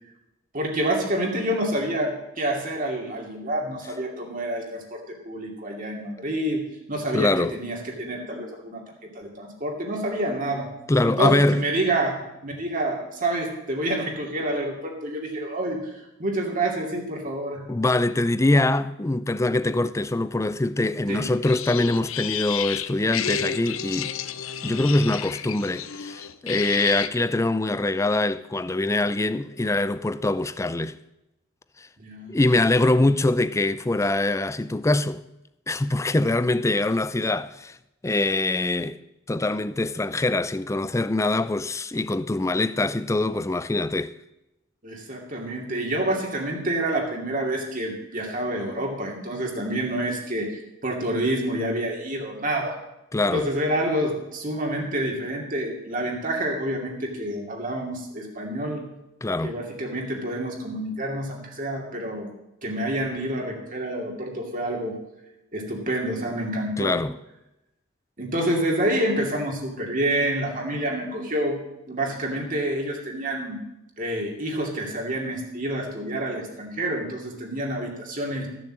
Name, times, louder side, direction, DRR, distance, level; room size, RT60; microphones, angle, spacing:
voice 1, 0.5-8.8 9.1-10.7 11.0-17.7 21.1-21.3 24.6-24.8 32.0-32.4 44.8-52.8 53.3-58.9 59.4-62.3 62.6-65.0 65.5-67.0 68.2-71.6 71.9-73.6 74.0-78.5, right 1 dB, 40° right, 2.5 m, -28 dB
voice 2, 7.1-7.5 10.9-11.7 17.7-24.1 24.6-31.0 32.3-35.2 35.7-37.8 38.0-39.0 39.3-44.1 53.1-53.5 59.2-59.5 66.8-67.1, left 2 dB, 15° left, 0.4 m, -23 dB
sound 1, 21.4-27.1, left 9 dB, 75° left, 0.7 m, -31 dB
14.5 x 7.1 x 7.4 m
head